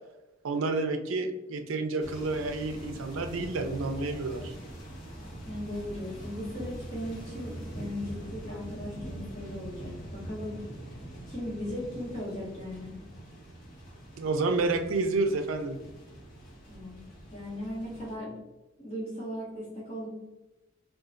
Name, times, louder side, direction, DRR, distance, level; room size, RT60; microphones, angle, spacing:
voice 1, 0.4-4.6 14.2-15.8, right 3 dB, 85° right, 7 dB, 0.4 m, -29 dB
sound 1, 2.0-18.1, right 1 dB, 55° left, 1.1 m, -43 dB
voice 2, 5.4-10.6 11.3-12.9 16.7-17.0 17.3-18.4 18.8-20.1, left 1 dB, 30° left, -8 dB, 1.4 m, -37 dB
3.9 x 2.4 x 2.4 m, 1.0 s
head